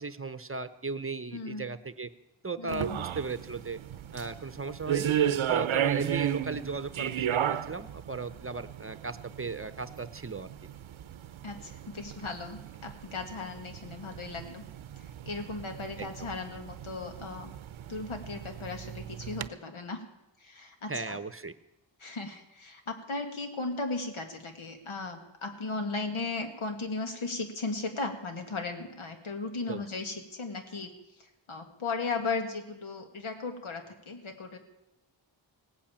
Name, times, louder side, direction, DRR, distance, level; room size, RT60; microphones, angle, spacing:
voice 1, 0.0-2.1 2.4-3.8 4.1-5.1 5.5-10.5 16.0-16.1 20.9-21.5 29.7-29.8, right 4 dB, 25° right, 13 dB, 0.8 m, -36 dB
voice 2, 1.3-1.7 2.6-3.0 5.2-5.3 11.4-14.6 15.0-17.5 17.9-20.0 20.4-21.2 22.0-30.9 31.2-34.6, left 3 dB, 85° left, 5 dB, 2.1 m, -36 dB
sound 1, 2.7-19.5, right 10 dB, 80° right, 0.7 m, -35 dB
17.5 x 8.7 x 8.7 m, 0.93 s
wide cardioid pair, 75°, 48 cm